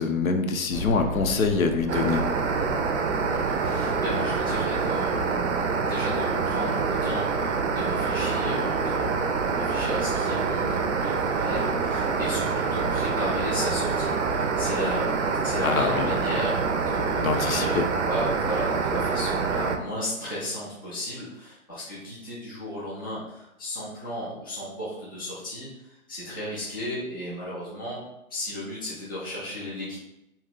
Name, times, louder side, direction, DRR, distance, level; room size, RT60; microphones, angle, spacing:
voice 1, 0.0-2.2 15.6-16.1 17.2-17.9, left 4 dB, 70° left, 5 dB, 0.6 m, -25 dB
sound 1, 0.7-9.6 10.1-10.2 10.6-10.7 11.9-12.0 12.2-12.3, equal, 5° right, 0.8 m, -39 dB
sound 2, 1.9-19.8, right 5 dB, 55° right, 0.5 m, -26 dB
voice 2, 3.3-28.0 28.3-30.0, equal, 15° left, -9 dB, 0.4 m, -34 dB
2.8 x 2.3 x 3.7 m, 0.88 s
hypercardioid pair, 140°, 43 cm